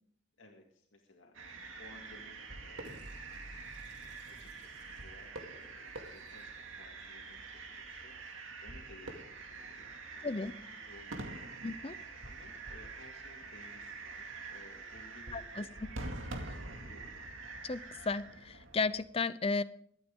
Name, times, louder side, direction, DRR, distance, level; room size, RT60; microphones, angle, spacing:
voice 1, 0.4-3.1 3.8-17.3, left 2 dB, 75° left, 0 dB, 2.0 m, -59 dB
sound 1, 1.3-19.0, right 3 dB, 90° right, 2.3 m, -46 dB
sound 2, 2.8-7.0, right 1 dB, 60° right, 4.9 m, -55 dB
voice 2, 11.6-11.9 15.3-15.6 17.6-19.6, left 4 dB, 30° left, 14 dB, 0.6 m, -34 dB
22.5 x 9.0 x 3.7 m, 0.63 s
head